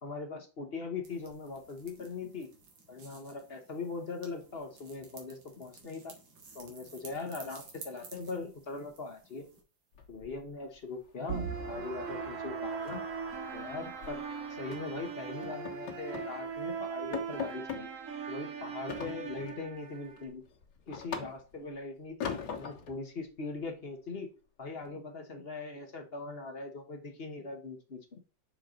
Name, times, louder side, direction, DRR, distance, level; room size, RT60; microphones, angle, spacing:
voice 1, 0.0-2.5 2.9-6.1 6.5-9.4 10.1-13.0 13.5-14.2 14.6-17.9 18.3-20.4 20.9-24.3 24.6-28.2, left 3 dB, 40° left, 4 dB, 1.1 m, -40 dB
sound 1, 1.0-9.6, right 4 dB, 90° right, 2.4 m, -54 dB
sound 2, 9.9-10.8 11.0-11.3 11.6-11.8 12.1-12.2 12.6-14.2 14.7-15.0 15.4-16.4 16.7-16.8 17.1-17.9 18.9-19.6 20.0-21.7 22.2-23.0, left 7 dB, 65° left, 1.9 m, -41 dB
sound 3, 11.3-20.3, right 6 dB, 50° right, 1.1 m, -39 dB
6.5 x 4.6 x 3.8 m, 0.35 s
omnidirectional pair, 2.0 m